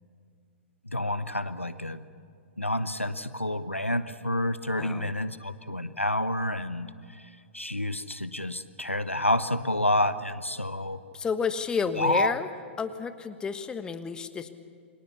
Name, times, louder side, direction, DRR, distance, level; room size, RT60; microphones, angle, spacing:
voice 1, 0.9-2.0 2.6-6.9 7.1-7.2 7.5-11.0 12.0-12.3, left 1 dB, 90° left, 13 dB, 1.1 m, -29 dB
voice 2, 4.7-5.1 11.1-12.5 12.8-14.5, left 6 dB, 10° left, 10 dB, 1.3 m, -31 dB
29.0 x 23.5 x 7.1 m, 2.3 s
figure-of-eight pair, 110°, 7 cm